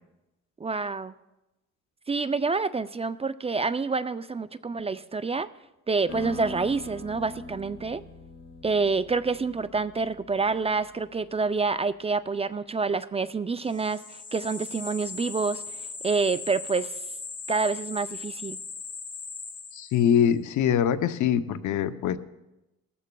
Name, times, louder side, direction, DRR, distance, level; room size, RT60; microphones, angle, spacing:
voice 1, 0.6-1.1 2.1-5.5 5.9-8.0 8.6-14.0 14.3-15.6 16.0-16.9 17.5-18.6, right 4 dB, 20° right, 13 dB, 0.4 m, -27 dB
sound 1, 6.1-11.2, left 2 dB, 60° left, 5.0 m, -43 dB
sound 2, 13.7-20.2, left 5 dB, 25° left, 1.1 m, -39 dB
voice 2, 19.7-22.2, left 9 dB, 80° left, 11 dB, 0.7 m, -23 dB
20.0 x 14.0 x 2.3 m, 0.97 s
cardioid pair, 90°, 30 cm